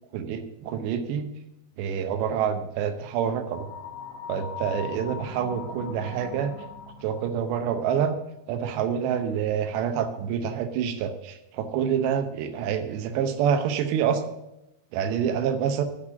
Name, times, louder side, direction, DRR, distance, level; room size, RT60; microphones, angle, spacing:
voice 1, 0.1-1.3 1.8-3.7 4.3-6.5 7.0-8.2 8.5-14.2 14.9-15.8, right 8 dB, 85° right, 8 dB, 3.1 m, -27 dB
sound 1, 3.4-7.4, left 6 dB, 75° left, 3.1 m, -40 dB
8.6 x 6.9 x 8.5 m, 0.90 s
omnidirectional pair, 4.9 m